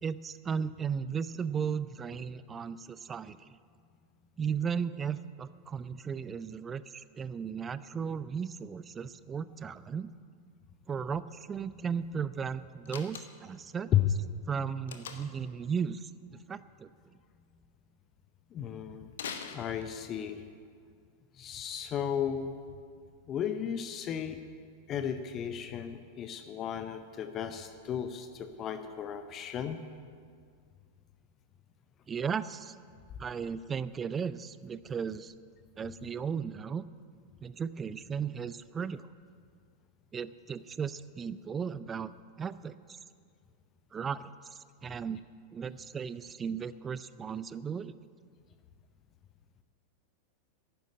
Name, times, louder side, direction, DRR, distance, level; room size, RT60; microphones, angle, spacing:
voice 1, 0.0-3.6 4.4-10.1 10.9-13.9 14.5-16.1 16.5-16.9 32.1-32.7 33.2-35.3 35.8-36.9 37.4-39.1 40.1-42.1 42.4-42.7 43.9-45.2 45.5-47.9, right 6 dB, 20° right, 16 dB, 0.4 m, -35 dB
Slam, 12.9-13.6 14.9-15.5 19.1-20.2, left 7 dB, 60° left, 1.1 m, -42 dB
voice 2, 18.5-19.1 19.5-20.4 21.4-22.5 23.3-24.4 24.9-29.8, left 9 dB, 30° left, 9 dB, 0.7 m, -34 dB
11.5 x 10.5 x 8.4 m, 2.1 s
figure-of-eight pair, 90°, 0 cm